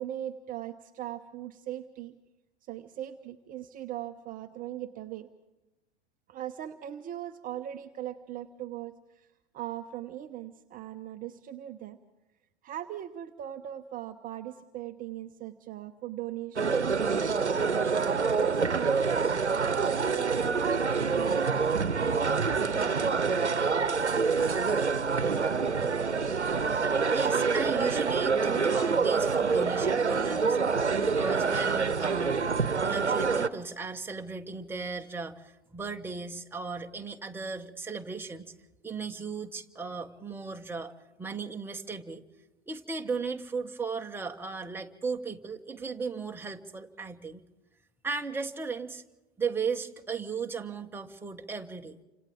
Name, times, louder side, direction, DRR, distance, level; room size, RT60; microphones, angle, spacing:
voice 1, 0.0-2.1 2.6-5.3 6.3-9.3 9.5-12.0 12.6-17.3 18.0-21.5 22.5-22.6, right 12 dB, 25° right, 6 dB, 0.9 m, -39 dB
sound 1, 16.6-33.5, right 5 dB, 85° right, 1.0 m, -26 dB
voice 2, 27.1-32.4 32.8-38.5 38.8-40.9 41.2-42.2 42.7-47.4 48.0-49.0 49.4-52.0, right 5 dB, 5° right, 3 dB, 1.2 m, -36 dB
29.5 x 26.5 x 3.6 m, 0.98 s
figure-of-eight pair, 95°, 34 cm